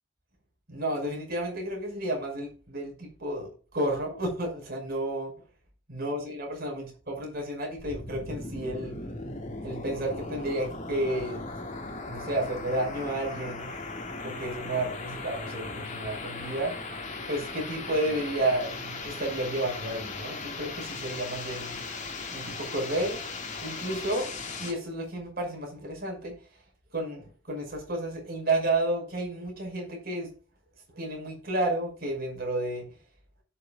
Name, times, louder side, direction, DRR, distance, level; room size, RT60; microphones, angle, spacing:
voice 1, 0.7-5.3 5.9-9.0 9.6-11.5 12.1-13.7 14.2-16.8 17.3-21.8 22.3-23.3 23.6-24.3 24.6-26.4 26.9-30.3 30.9-32.9, right 1 dB, 50° right, 5.5 m, -31 dB
sound 1, 7.8-24.7, left 3 dB, 35° left, 2.1 m, -38 dB
17.0 x 6.5 x 2.4 m
head